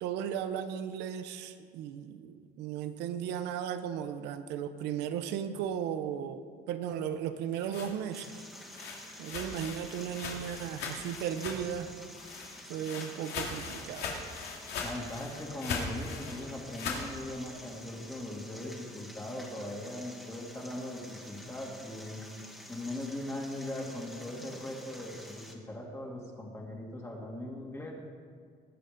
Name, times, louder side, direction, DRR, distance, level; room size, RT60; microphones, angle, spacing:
voice 1, 0.0-8.5 8.8-11.9 12.7-14.1, right 9 dB, 90° right, 10 dB, 0.8 m, -36 dB
sound 1, 7.3-11.8 12.1-17.1, left 4 dB, 80° left, 2.4 m, -40 dB
sound 2, 8.1-25.5, left 1 dB, ahead, 1.9 m, -49 dB
voice 2, 14.8-22.3 22.7-27.9, left 1 dB, 15° left, -2 dB, 2.3 m, -40 dB
20.0 x 6.8 x 5.1 m, 2.1 s
cardioid pair, 110°, 17 cm